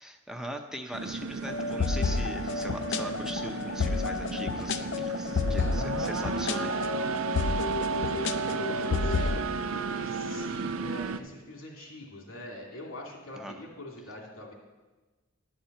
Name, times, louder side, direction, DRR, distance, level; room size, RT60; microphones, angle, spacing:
voice 1, 0.0-6.8 13.4-13.5, equal, 5° right, 3 dB, 0.6 m, -40 dB
sound 1, 0.9-11.2, right 4 dB, 85° right, 0.5 m, -33 dB
sound 2, 1.4-9.4, left 4 dB, 60° left, 0.5 m, -31 dB
voice 2, 8.0-14.5, left 1 dB, 90° left, -1 dB, 2.4 m, -45 dB
11.5 x 4.4 x 7.8 m, 1.2 s
head